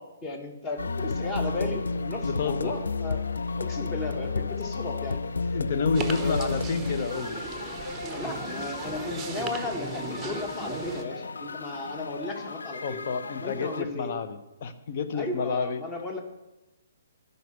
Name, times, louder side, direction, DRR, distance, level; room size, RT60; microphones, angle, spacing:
voice 1, 0.0-3.3 3.6-5.5 6.0-6.5 8.1-13.0 13.4-14.2 15.1-16.2, left 2 dB, 20° left, 5 dB, 1.4 m, -35 dB
sound 1, 0.8-13.8, left 3 dB, 65° left, 0.4 m, -32 dB
voice 2, 2.2-2.7 5.5-7.4 12.8-15.8, left 5 dB, 45° left, 10 dB, 0.8 m, -30 dB
sound 2, 5.9-11.0, right 5 dB, 10° right, 0.8 m, -37 dB
12.0 x 5.5 x 8.1 m, 1.0 s
figure-of-eight pair, 125°, 0 cm